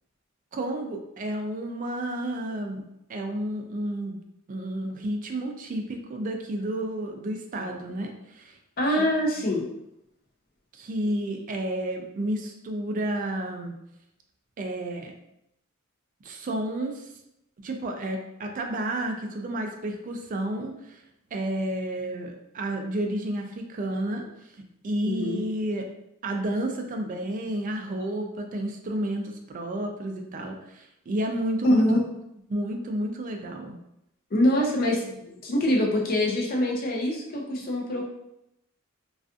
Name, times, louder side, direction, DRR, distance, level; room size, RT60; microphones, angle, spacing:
voice 1, 0.5-2.8 3.1-4.2 4.5-8.6 9.0-9.1 10.7-13.8 14.6-15.1 16.2-17.1 17.6-21.0 21.3-24.6 24.8-25.9 26.2-31.9 32.5-33.8 35.0-35.2, right 1 dB, 40° right, 4 dB, 0.3 m, -31 dB
voice 2, 8.8-9.7 25.0-25.4 31.6-32.0 34.3-35.0 35.3-38.1, equal, 45° left, -1 dB, 0.5 m, -24 dB
2.4 x 2.3 x 2.4 m, 0.83 s
head